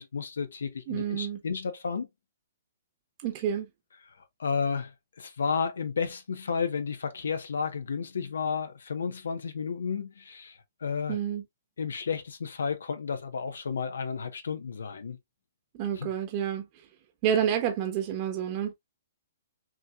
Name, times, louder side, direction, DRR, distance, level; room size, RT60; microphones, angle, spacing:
voice 1, 0.0-2.1 4.4-4.9 5.2-11.2 11.8-15.2 15.9-16.1, left 5 dB, 75° left, 1.0 m, -32 dB
voice 2, 0.9-1.4 3.2-3.7 11.1-11.4 15.7-16.7 17.2-18.7, right 9 dB, 35° right, 1.1 m, -29 dB
6.0 x 3.0 x 2.4 m
hypercardioid pair, 130°, 0 cm